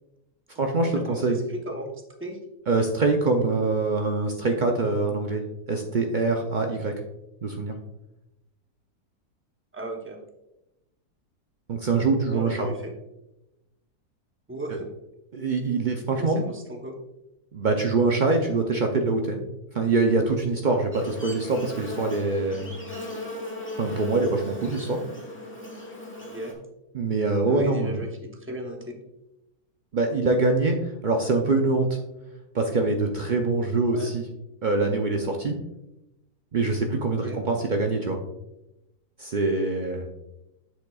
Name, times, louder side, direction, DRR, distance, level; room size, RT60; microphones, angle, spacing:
voice 1, 0.6-1.4 2.7-6.9 7.4-7.8 11.7-12.7 15.3-16.4 17.5-19.4 19.7-22.7 23.8-25.0 26.9-28.0 29.9-32.0 32.5-34.3 34.6-35.6 36.5-38.2 39.2-40.1, right 3 dB, 75° right, 3 dB, 0.4 m, -24 dB
voice 2, 1.1-1.9 2.2-2.4 9.7-10.2 12.2-12.9 14.5-14.9 16.2-17.0 26.2-26.6 27.4-29.0 33.9-34.1 37.2-37.4, right 1 dB, 15° right, 2 dB, 0.5 m, -36 dB
Buzz, 20.9-26.5, left 1 dB, 10° left, 1.0 m, -37 dB
8.0 x 6.6 x 2.3 m, 0.92 s
omnidirectional pair, 1.6 m